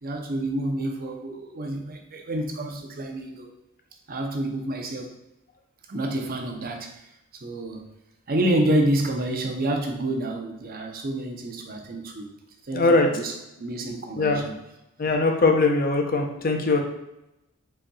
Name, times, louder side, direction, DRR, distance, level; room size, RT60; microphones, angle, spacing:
voice 1, 0.0-3.5 4.1-5.1 5.9-6.9 7.4-7.9 8.3-12.3 12.6-14.5, right 1 dB, 45° right, 3 dB, 0.7 m, -28 dB
voice 2, 12.7-13.1 13.8-14.4 15.0-16.8, left 3 dB, 45° left, 3 dB, 0.7 m, -21 dB
5.3 x 4.2 x 2.3 m, 0.89 s
head